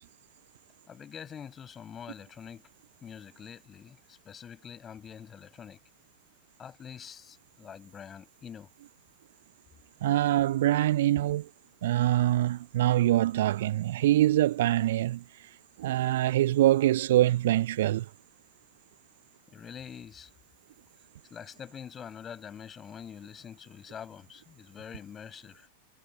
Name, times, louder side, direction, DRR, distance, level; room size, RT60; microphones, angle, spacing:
voice 1, 0.9-2.6 3.0-5.8 6.6-8.7 19.5-20.3 21.3-25.7, left 8 dB, 25° left, 7.2 m, -45 dB
voice 2, 10.0-11.5 11.8-15.2 15.8-18.1, right 14 dB, 55° right, 0.6 m, -24 dB
figure-of-eight pair, 90°, 0 cm